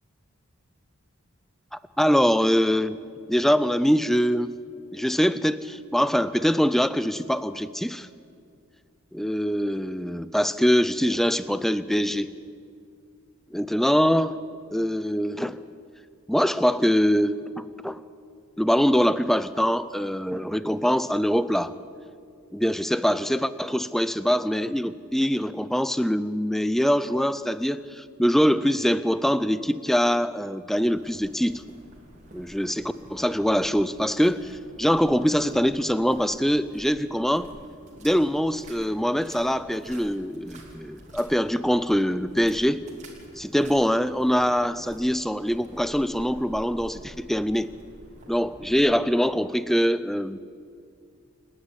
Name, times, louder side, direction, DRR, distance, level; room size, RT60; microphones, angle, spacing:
voice 1, 2.0-3.0 3.3-4.5 4.9-8.1 9.1-12.3 13.5-14.4 14.7-15.6 16.3-18.0 18.6-21.7 22.5-31.6 32.3-37.5 38.0-42.8 43.4-47.7 48.3-50.4, equal, ahead, 15 dB, 0.4 m, -23 dB
sound 1, 30.9-48.8, right 1 dB, 35° right, 3.1 m, -48 dB
29.0 x 9.8 x 9.8 m, 2.4 s
head